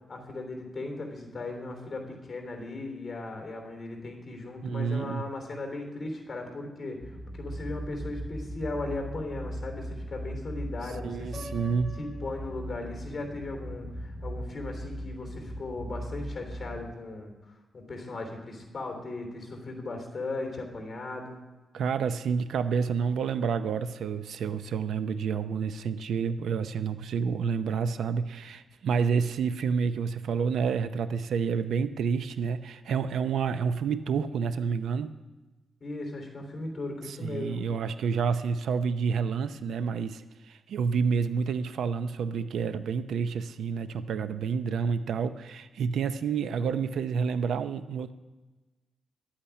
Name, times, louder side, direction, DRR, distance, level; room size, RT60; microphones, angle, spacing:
voice 1, 0.1-11.5 12.0-21.4 35.8-37.7, left 2 dB, 30° left, 3 dB, 3.3 m, -37 dB
voice 2, 4.6-5.2 11.0-11.9 21.7-35.1 37.1-48.1, right 6 dB, 90° right, 12 dB, 0.7 m, -29 dB
sound 1, 7.0-16.9, equal, 10° right, 2.6 m, -39 dB
Piano, 11.3-13.3, left 1 dB, 10° left, 3.7 m, -47 dB
11.5 x 8.8 x 8.4 m, 1.1 s
wide cardioid pair, 145°, 0 cm